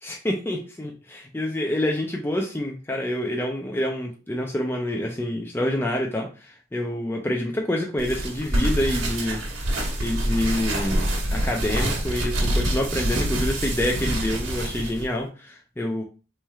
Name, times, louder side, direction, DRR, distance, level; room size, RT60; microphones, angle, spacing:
voice 1, 0.0-9.4 10.0-16.0, left 1 dB, 10° left, 1 dB, 0.4 m, -27 dB
sound 1, 8.0-15.0, right 1 dB, 85° right, 1.3 m, -26 dB
4.1 x 3.1 x 2.3 m, 0.35 s
head